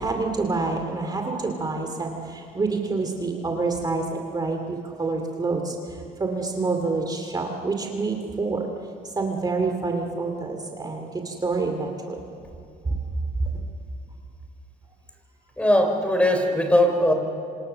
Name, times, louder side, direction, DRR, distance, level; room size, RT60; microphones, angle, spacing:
voice 1, 0.0-5.8 6.2-8.7 9.2-12.2, right 3 dB, 25° right, 3 dB, 2.6 m, -27 dB
voice 2, 15.6-17.1, left 1 dB, 5° left, 5 dB, 3.7 m, -20 dB
27.0 x 26.5 x 6.8 m, 2.5 s
cardioid pair, 110°, 17 cm